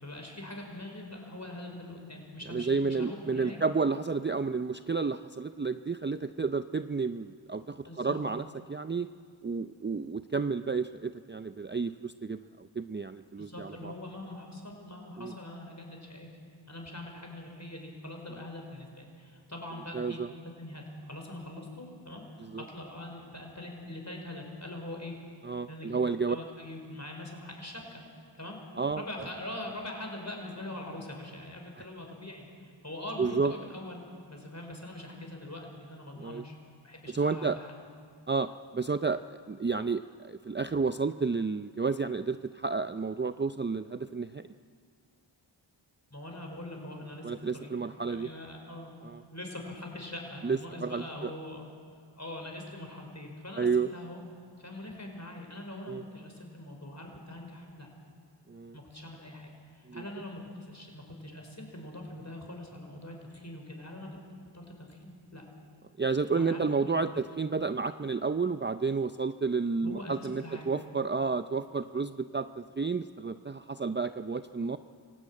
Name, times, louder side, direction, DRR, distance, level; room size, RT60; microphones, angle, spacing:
voice 1, 0.0-3.7 7.9-8.2 13.4-16.3 16.7-25.1 25.7-26.0 26.3-28.0 28.3-28.6 28.9-32.5 32.8-34.0 34.3-36.5 36.8-37.7 46.1-47.7 48.0-48.9 49.3-51.7 52.2-54.2 54.6-57.9 58.7-64.2 64.5-65.4 66.3-67.2 69.8-70.7, left 1 dB, 35° left, 2 dB, 5.4 m, -43 dB
voice 2, 2.5-9.1 9.4-13.9 15.2-15.3 19.9-20.3 22.4-22.6 25.4-26.4 28.8-29.0 33.2-33.5 36.2-36.4 37.1-37.6 38.3-44.4 47.2-48.3 49.0-49.2 50.4-51.3 53.6-53.9 55.9-56.0 58.5-58.8 59.9-60.0 66.0-74.8, right 4 dB, 25° right, 10 dB, 0.5 m, -31 dB
26.0 x 16.5 x 8.8 m, 2.2 s
wide cardioid pair, 50°, 47 cm